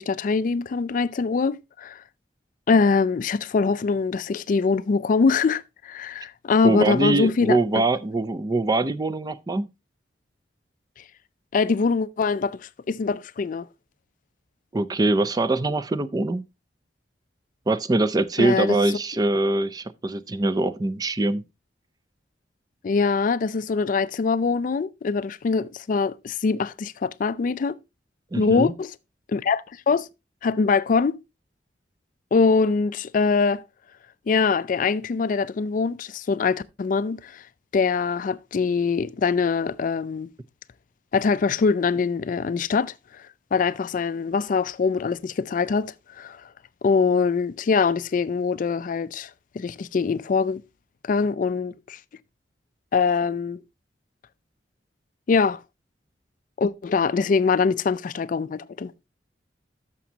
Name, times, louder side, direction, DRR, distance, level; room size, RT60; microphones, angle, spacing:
voice 1, 0.0-2.0 2.7-7.6 11.5-13.7 18.4-18.8 22.8-27.8 28.4-28.9 29.3-30.1 30.4-31.2 32.3-33.6 34.3-37.4 37.7-40.3 41.1-43.2 43.5-46.5 46.8-50.6 51.0-52.0 52.9-53.6 55.3-55.6 56.6-58.9, left 4 dB, 50° left, 0.4 m, -23 dB
voice 2, 6.6-9.7 14.7-16.4 17.7-21.4 28.3-28.7, right 2 dB, 20° right, 0.4 m, -23 dB
13.0 x 6.1 x 2.8 m
head